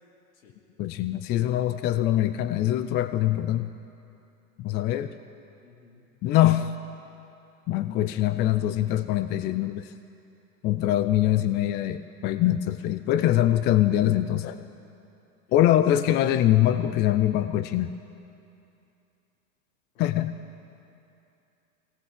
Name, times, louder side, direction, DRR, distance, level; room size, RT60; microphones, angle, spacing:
voice 1, 0.8-3.8 4.6-5.1 6.2-6.7 7.7-9.9 10.6-14.6 15.5-17.9 20.0-20.3, left 13 dB, 25° left, 11 dB, 0.4 m, -23 dB
voice 2, 5.6-6.1 9.5-10.0 15.5-15.6 19.9-20.3, left 5 dB, 70° left, 0 dB, 3.9 m, -58 dB
20.0 x 18.0 x 7.5 m, 2.7 s
hypercardioid pair, 130°, 43 cm